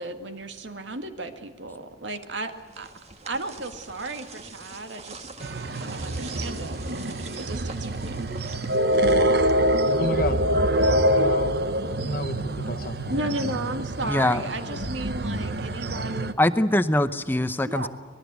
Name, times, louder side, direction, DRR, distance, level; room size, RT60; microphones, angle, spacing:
voice 1, 0.0-2.9 3.3-5.3 5.8-8.3 13.1-16.3 17.6-17.9, right 2 dB, 75° right, 7 dB, 2.0 m, -34 dB
sound 1, 2.3-10.1, right 3 dB, 35° right, 1.7 m, -44 dB
sound 2, 5.4-16.3, right 1 dB, 55° right, 1.1 m, -25 dB
voice 2, 10.0-10.4 11.2-11.6 12.0-14.9, left 2 dB, 50° left, 9 dB, 1.3 m, -33 dB
voice 3, 14.1-14.4 16.4-17.9, left 1 dB, 10° left, 10 dB, 0.7 m, -22 dB
25.5 x 20.5 x 8.2 m, 1.4 s
head